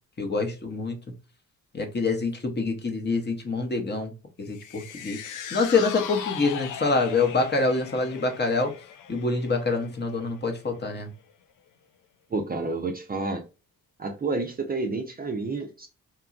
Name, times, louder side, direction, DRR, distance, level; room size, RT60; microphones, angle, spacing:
voice 1, 0.2-1.0 1.7-4.1 4.4-8.7 9.1-11.1, left 3 dB, 30° left, 4 dB, 0.8 m, -26 dB
sound 1, 4.5-10.9 11.3-11.4, left 8 dB, 60° left, 0.5 m, -39 dB
voice 2, 12.3-13.4 14.0-15.9, right 3 dB, 25° right, 4 dB, 0.5 m, -29 dB
2.9 x 2.2 x 2.3 m, 0.31 s
supercardioid pair, 50°, 36 cm